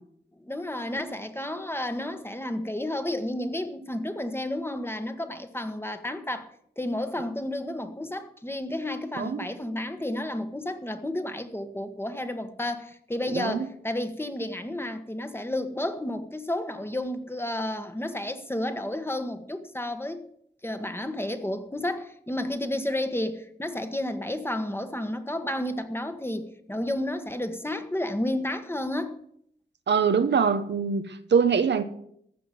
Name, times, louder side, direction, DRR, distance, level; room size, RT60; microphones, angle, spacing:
voice 1, 0.4-20.2 20.6-29.2, left 1 dB, 15° left, 1.4 m, -31 dB
voice 2, 13.3-13.7 29.9-31.8, right 6 dB, 85° right, 1.0 m, -23 dB
15.0 x 6.1 x 9.0 m
wide cardioid pair, 90°, 18 cm